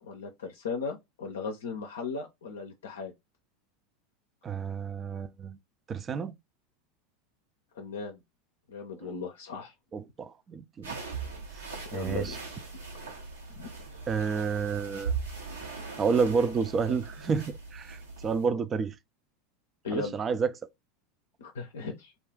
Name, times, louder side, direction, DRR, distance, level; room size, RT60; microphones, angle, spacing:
voice 1, 0.0-3.1 7.8-8.2 8.7-9.7 11.9-12.4 13.5-13.7 19.8-20.2 21.4-22.1, left 4 dB, 70° left, 0.5 m, -37 dB
voice 2, 4.4-5.6 5.9-6.3 9.9-10.9 11.5-11.7 11.9-12.4 14.1-15.1 16.0-18.9 19.9-20.5, right 5 dB, 30° right, 0.4 m, -30 dB
sound 1, 10.8-18.5, right 5 dB, 80° right, 1.1 m, -39 dB
2.4 x 2.3 x 3.6 m
figure-of-eight pair, 80°, 0 cm